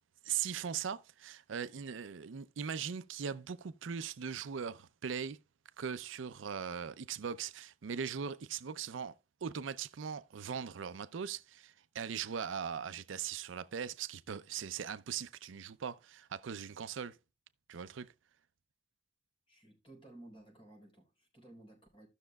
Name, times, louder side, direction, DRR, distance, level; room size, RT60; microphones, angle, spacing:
voice 1, 0.2-5.4 5.8-9.1 9.4-17.2 17.7-18.1, right 7 dB, 85° right, 0.5 m, -40 dB
voice 2, 19.5-22.1, right 1 dB, 30° left, 4.3 m, -56 dB
16.0 x 6.3 x 2.3 m
head